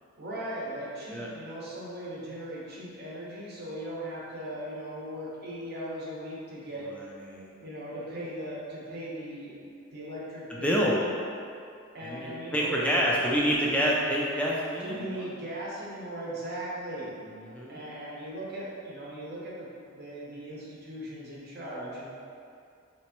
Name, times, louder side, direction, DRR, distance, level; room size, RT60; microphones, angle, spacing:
voice 1, 0.2-6.9 7.6-9.6 9.9-11.0 11.9-13.1 14.8-17.1 17.7-22.1, right 1 dB, 50° right, -6 dB, 0.8 m, -38 dB
voice 2, 10.5-11.0 12.0-15.3 17.3-17.8, equal, 5° left, -4 dB, 0.3 m, -27 dB
3.3 x 3.0 x 2.9 m, 2.4 s
head